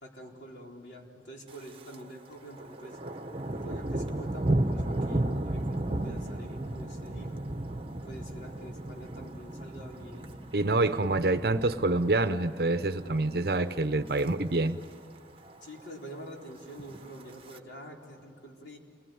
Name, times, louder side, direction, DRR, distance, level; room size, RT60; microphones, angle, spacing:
voice 1, 0.0-3.0 3.5-7.4 8.1-10.3 13.0-13.3 15.6-18.8, equal, 85° left, 0 dB, 4.1 m, -46 dB
Thunder, 1.5-2.0 2.3-12.7 13.0-13.4 13.8-14.3 14.6-14.7 14.8-14.9 15.3-15.9 16.6-17.6, right 1 dB, 30° right, 1.3 m, -34 dB
voice 2, 10.5-14.8, right 2 dB, 60° right, 10 dB, 0.8 m, -26 dB
29.0 x 21.0 x 9.4 m, 2.5 s
head